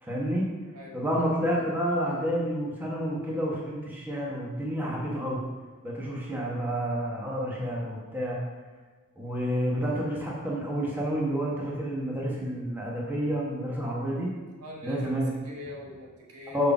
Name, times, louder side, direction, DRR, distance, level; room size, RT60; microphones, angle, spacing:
voice 1, 0.0-0.5 0.9-5.4 5.8-8.4 9.2-14.3 14.8-15.3 16.5-16.7, equal, 10° right, -4 dB, 1.2 m, -29 dB
voice 2, 14.6-16.7, equal, 85° right, -2 dB, 1.5 m, -43 dB
5.3 x 4.7 x 6.0 m, 1.4 s
head